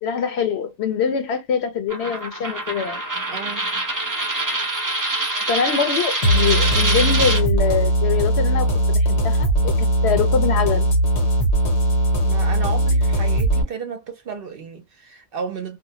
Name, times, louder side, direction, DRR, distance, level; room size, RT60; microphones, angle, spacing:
voice 1, 0.0-3.0 5.5-10.9, left 6 dB, 65° left, 0.9 m, -24 dB
Coin (dropping), 1.9-7.4, right 2 dB, 25° right, 0.4 m, -25 dB
voice 2, 3.3-3.7 12.3-15.8, right 5 dB, 60° right, 0.8 m, -33 dB
sound 1, 6.2-13.6, right 1 dB, 90° left, 1.3 m, -19 dB
2.7 x 2.1 x 2.7 m
omnidirectional pair, 1.2 m